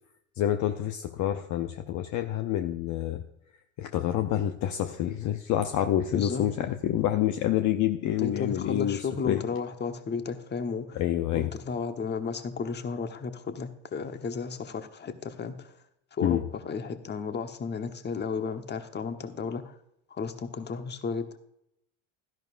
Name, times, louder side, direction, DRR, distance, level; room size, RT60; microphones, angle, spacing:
voice 1, 0.4-3.2 3.8-9.0 9.2-9.4 11.0-11.5 16.2-16.4, left 11 dB, 50° left, 7 dB, 0.8 m, -27 dB
voice 2, 6.1-6.7 8.2-11.0 11.3-15.7 16.1-19.7 20.1-21.4, left 5 dB, 25° left, 8 dB, 1.1 m, -34 dB
12.5 x 10.5 x 2.6 m, 0.79 s
hypercardioid pair, 85°, 39 cm